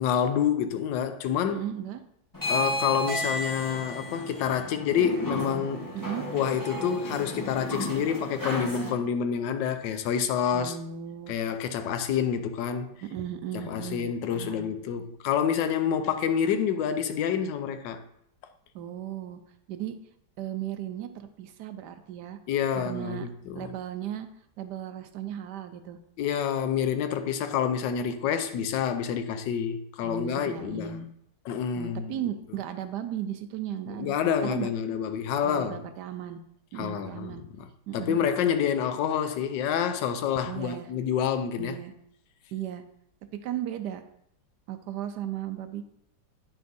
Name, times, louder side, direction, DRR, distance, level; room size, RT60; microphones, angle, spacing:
voice 1, 0.0-1.6 2.5-5.9 6.3-10.8 11.3-13.0 13.5-18.0 22.5-23.7 26.2-31.0 31.5-32.2 33.9-35.8 36.7-37.7 37.9-41.8, left 8 dB, 90° left, 1.3 m, -28 dB
voice 2, 1.5-2.0 5.9-6.2 10.5-11.3 13.0-14.1 14.3-14.7 18.7-19.4 19.7-19.9 20.4-22.4 22.7-23.3 23.5-24.3 24.6-26.0 30.0-31.1 31.8-34.1 34.4-34.7 35.4-36.4 36.7-37.4 37.9-38.3 40.5-40.9 41.6-41.9 42.5-42.8 43.4-44.0 44.7-45.8, right 10 dB, 75° right, 1.1 m, -36 dB
sound 1, 2.3-8.9, equal, 10° left, 1.3 m, -33 dB
9.5 x 5.9 x 2.6 m
omnidirectional pair, 1.9 m